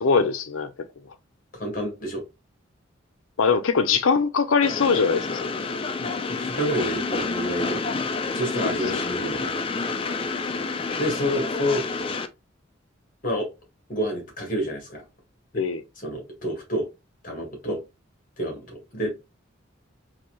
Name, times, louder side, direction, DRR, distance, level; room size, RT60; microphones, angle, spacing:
voice 1, 0.0-0.9 3.4-5.5 8.6-9.0 15.5-15.8, left 5 dB, 80° left, 0.5 m, -22 dB
voice 2, 1.5-2.2 6.0-7.8 8.3-9.5 11.0-11.8 13.2-13.5 13.9-15.0 16.0-16.9 17.2-17.8 18.4-19.1, equal, 40° left, 1.6 m, -29 dB
Train, 4.6-12.3, left 4 dB, 25° left, 0.3 m, -28 dB
3.9 x 2.7 x 2.9 m
head